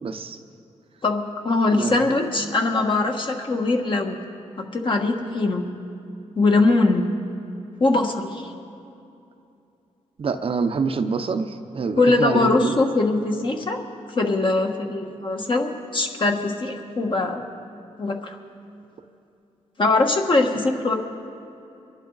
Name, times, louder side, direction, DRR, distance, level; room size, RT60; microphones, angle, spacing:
voice 1, 0.0-0.4 1.7-2.1 10.2-12.8, right 5 dB, 50° right, 7 dB, 0.7 m, -26 dB
voice 2, 1.0-4.2 4.6-5.7 6.3-7.1 7.8-8.5 12.0-13.8 14.1-17.4 18.0-18.4 19.8-20.9, left 3 dB, 40° left, 2 dB, 1.4 m, -22 dB
23.0 x 11.0 x 4.0 m, 2.6 s
cardioid pair, 110°, 13 cm